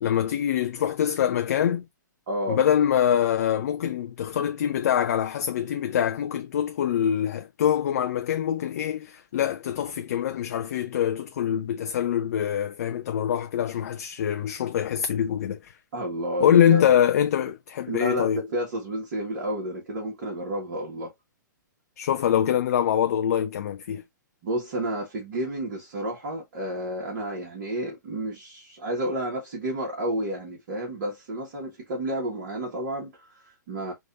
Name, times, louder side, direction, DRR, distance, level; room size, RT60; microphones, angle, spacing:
voice 1, 0.0-1.9 2.5-15.8 16.4-18.4 22.0-24.0, left 9 dB, 55° left, 0.4 m, -24 dB
voice 2, 2.3-2.6 15.9-16.8 17.9-21.1 24.4-33.9, right 1 dB, 45° right, 1.8 m, -31 dB
4.6 x 2.7 x 2.6 m
figure-of-eight pair, 115°, 10 cm